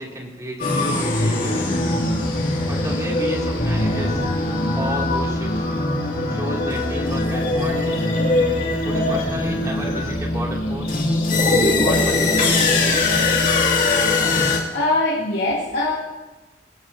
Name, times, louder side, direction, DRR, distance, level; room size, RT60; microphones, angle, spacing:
voice 1, 0.0-1.7 2.6-4.3 4.7-5.7 6.3-8.3 8.8-10.9 11.5-12.6, right 1 dB, 20° right, -2 dB, 2.8 m, -32 dB
sound 1, 0.6-14.6, left 2 dB, 45° left, 2.5 m, -21 dB
voice 2, 14.7-16.0, left 2 dB, 70° left, -8 dB, 2.8 m, -21 dB
22.5 x 18.5 x 2.8 m, 1.2 s
head